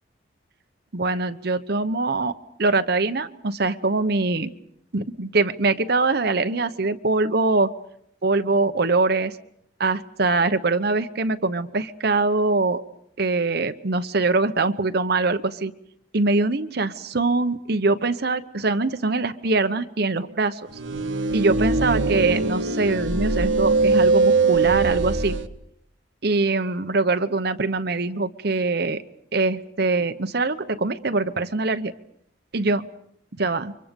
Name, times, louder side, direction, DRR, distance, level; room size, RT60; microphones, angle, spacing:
voice 1, 0.9-4.5 4.9-7.7 8.2-9.4 9.8-12.8 13.2-15.7 16.1-20.6 21.3-25.4 26.2-29.0 29.3-31.9 32.5-32.9 33.4-33.7, right 3 dB, 55° right, 10 dB, 1.0 m, -23 dB
sound 1, 20.8-25.5, right 3 dB, 80° right, 1.2 m, -21 dB
30.0 x 24.5 x 5.2 m, 0.71 s
head